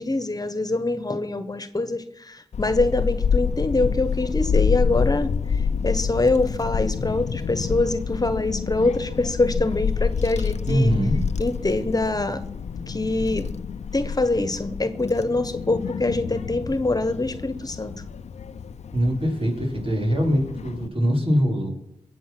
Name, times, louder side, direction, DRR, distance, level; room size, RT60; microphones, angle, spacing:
voice 1, 0.0-5.3 5.8-10.9 11.4-12.4 12.9-13.5 13.9-17.9, left 2 dB, 35° left, 11 dB, 1.4 m, -24 dB
Child speech kid speaking / Wind, 2.5-20.9, left 6 dB, 80° left, 0.7 m, -28 dB
voice 2, 10.7-11.3 18.9-21.7, equal, 55° right, -1 dB, 5.0 m, -22 dB
20.5 x 8.3 x 6.2 m, 0.80 s
cardioid pair, 40°, 11 cm